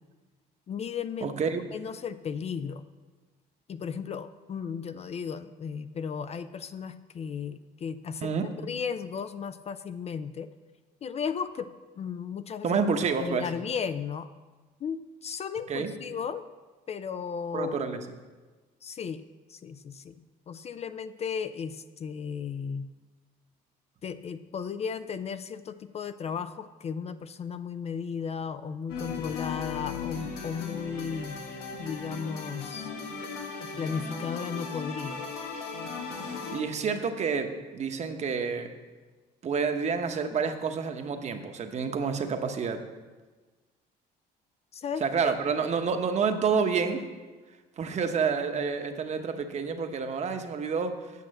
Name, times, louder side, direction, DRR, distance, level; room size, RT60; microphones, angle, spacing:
voice 1, 0.7-1.4 1.7-2.8 3.7-10.5 11.0-11.7 12.0-12.8 13.2-14.3 14.8-16.4 16.9-17.8 18.8-19.2 19.5-20.2 20.5-22.9 24.0-31.4 31.8-32.9 33.6-35.2 44.7-45.3, left 6 dB, 40° left, 12 dB, 0.4 m, -35 dB
voice 2, 1.2-1.6 8.2-8.5 12.6-13.5 15.7-15.9 17.5-18.0 36.5-38.7 39.4-42.8 45.0-47.0 47.8-50.9, right 5 dB, 40° right, 6 dB, 1.0 m, -28 dB
sound 1, 28.9-36.6, left 5 dB, 85° left, 1.6 m, -37 dB
8.4 x 6.3 x 7.7 m, 1.3 s
cardioid pair, 110°, 17 cm